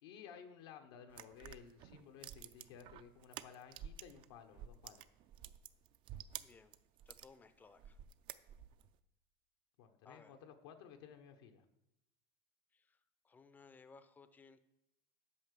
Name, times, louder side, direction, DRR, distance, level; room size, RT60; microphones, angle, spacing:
voice 1, 0.0-5.1 9.8-11.6, left 7 dB, 80° left, 5 dB, 1.0 m, -56 dB
sound 1, 1.1-4.3 4.5-7.3 7.8-8.9, right 11 dB, 40° right, 0.4 m, -51 dB
voice 2, 6.4-6.7 7.1-8.0 10.0-10.4 12.7-13.0 13.2-14.6, left 4 dB, 15° left, 12 dB, 0.5 m, -61 dB
8.6 x 5.6 x 6.7 m, 0.86 s
supercardioid pair, 145°, 13 cm